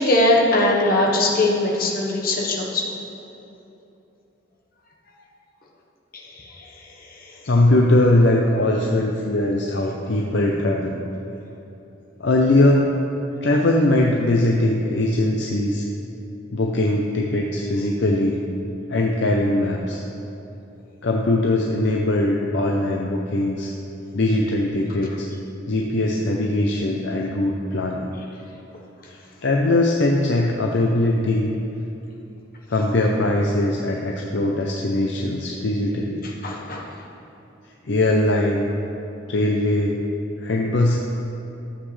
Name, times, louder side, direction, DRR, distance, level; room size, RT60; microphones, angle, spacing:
voice 1, 0.0-2.8 6.1-6.4 36.4-36.9, left 1 dB, 45° left, -2 dB, 1.2 m, -20 dB
voice 2, 7.4-11.0 12.2-12.9 13.4-15.9 16.5-18.4 18.9-20.0 21.0-23.7 24.1-25.3 25.7-28.1 29.1-31.5 32.7-36.3 37.8-38.7 39.3-40.0 40.4-41.0, left 1 dB, 60° left, 0 dB, 0.6 m, -21 dB
13.0 x 7.5 x 3.3 m, 3.0 s
head